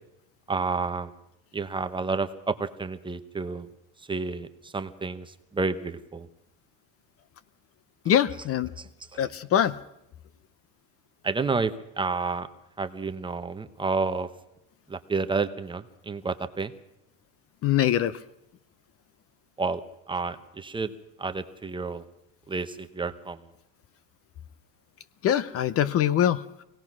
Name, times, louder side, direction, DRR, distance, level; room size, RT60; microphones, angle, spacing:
voice 1, 0.5-1.1 1.5-3.7 4.1-6.3 8.8-9.2 11.2-12.5 12.8-14.3 14.9-16.7 19.6-19.8 20.1-20.9 21.2-22.0 22.5-23.4, right 4 dB, 15° right, 9 dB, 0.9 m, -30 dB
voice 2, 8.1-8.7 9.2-9.7 17.6-18.2 25.2-26.4, left 10 dB, 35° left, 17 dB, 0.7 m, -23 dB
24.5 x 18.0 x 6.1 m, 0.83 s
cardioid pair, 135°, 38 cm